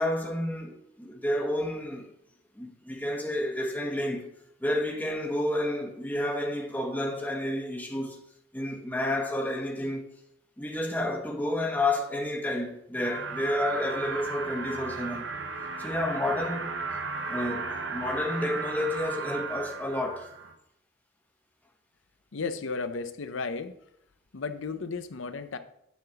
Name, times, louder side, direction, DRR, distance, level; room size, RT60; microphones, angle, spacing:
voice 1, 0.0-2.1 2.6-4.3 4.6-8.2 8.5-10.1 10.6-15.3 15.8-16.8 17.3-20.3, left 1 dB, 10° left, 1.1 m, -30 dB
sound 1, 13.0-20.5, right 4 dB, 70° right, 1.0 m, -35 dB
voice 2, 22.3-23.8 24.3-25.6, left 4 dB, 85° left, 0.7 m, -34 dB
9.5 x 4.0 x 6.9 m
head